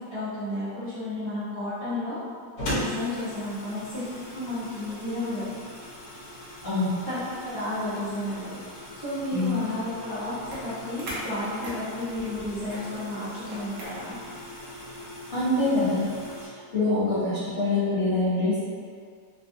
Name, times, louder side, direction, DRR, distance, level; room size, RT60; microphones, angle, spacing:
voice 1, 0.1-2.2 2.6-5.5 7.1-8.6 8.9-14.2, left 1 dB, 20° right, -16 dB, 0.7 m, -32 dB
sound 1, 2.6-16.5, left 1 dB, 65° left, 1.2 m, -40 dB
voice 2, 6.6-7.0 9.3-9.6 15.3-16.1 16.4-18.6, left 2 dB, 35° left, -15 dB, 1.5 m, -25 dB
sound 2, 10.2-15.0, right 1 dB, 60° right, 0.9 m, -41 dB
3.2 x 2.4 x 2.6 m, 2.1 s
omnidirectional pair, 1.8 m